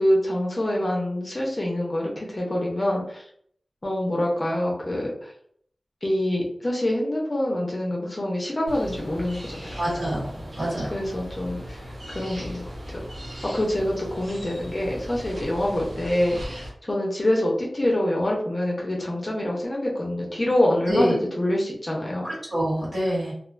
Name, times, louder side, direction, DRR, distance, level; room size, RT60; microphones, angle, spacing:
voice 1, 0.0-3.2 3.8-5.3 6.0-9.8 10.9-11.8 12.1-13.0 13.5-22.3, left 1 dB, 35° left, -2 dB, 0.6 m, -26 dB
sound 1, 8.7-16.7, equal, 80° right, 1.0 m, -38 dB
voice 2, 9.8-11.0 20.9-21.1 22.2-23.3, equal, 60° right, -7 dB, 1.3 m, -26 dB
2.4 x 2.2 x 2.4 m, 0.63 s
wide cardioid pair, 75°, 0 cm